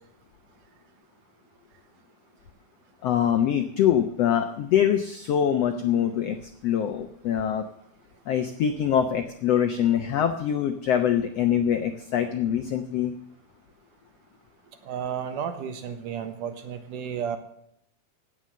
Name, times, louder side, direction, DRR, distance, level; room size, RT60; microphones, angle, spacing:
voice 1, 3.0-6.4 6.6-7.6 8.3-13.1, left 9 dB, 85° left, 7 dB, 1.4 m, -24 dB
voice 2, 5.7-6.1 14.9-17.4, right 8 dB, 70° right, 8 dB, 2.7 m, -33 dB
17.0 x 7.2 x 7.6 m, 0.74 s
omnidirectional pair, 4.1 m